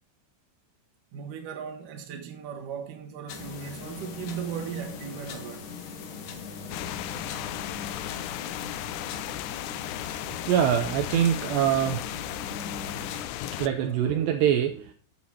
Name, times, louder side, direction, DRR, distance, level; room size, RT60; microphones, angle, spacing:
voice 1, 1.1-5.7, right 8 dB, 60° right, 2.5 m, -37 dB
sound 1, 3.3-13.2, left 5 dB, 70° left, 2.0 m, -40 dB
sound 2, 6.7-13.7, left 14 dB, 90° left, 3.1 m, -36 dB
voice 2, 10.3-12.2 13.5-14.9, right 9 dB, 80° right, 2.6 m, -24 dB
15.0 x 7.9 x 2.9 m
omnidirectional pair, 5.4 m